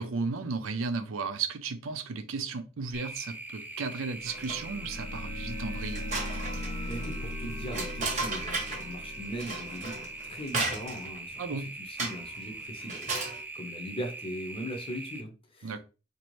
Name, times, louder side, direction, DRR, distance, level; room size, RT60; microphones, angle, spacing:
voice 1, 0.0-6.0 11.4-11.7 15.6-15.8, right 4 dB, 70° right, 0.5 m, -34 dB
sound 1, 2.9-15.2, right 2 dB, 10° right, 0.3 m, -42 dB
sound 2, 4.1-10.8, left 1 dB, 80° left, 1.1 m, -39 dB
sound 3, 4.3-4.9 5.3-5.4 5.8-8.9 9.4-11.2 12.0-12.4 12.8-13.4, right 3 dB, 35° right, 0.9 m, -35 dB
voice 2, 6.9-15.8, equal, 30° left, 0.7 m, -40 dB
4.1 x 2.6 x 3.1 m
head